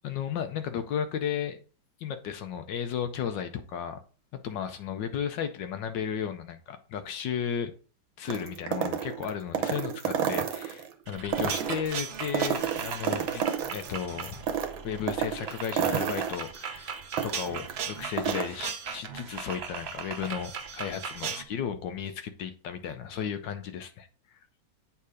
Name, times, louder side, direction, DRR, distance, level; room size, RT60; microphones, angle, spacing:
voice 1, 0.0-1.6 2.0-4.0 4.3-7.7 8.2-13.4 13.7-14.4 14.8-16.9 17.2-24.1, left 8 dB, 70° left, 1.3 m, -34 dB
sound 1, 8.3-10.9 11.2-13.9 14.2-17.7 18.0-18.5, right 8 dB, 90° right, 1.7 m, -30 dB
sound 2, 11.1-21.4, right 6 dB, 65° right, 0.6 m, -38 dB
8.4 x 3.6 x 4.8 m
omnidirectional pair, 2.1 m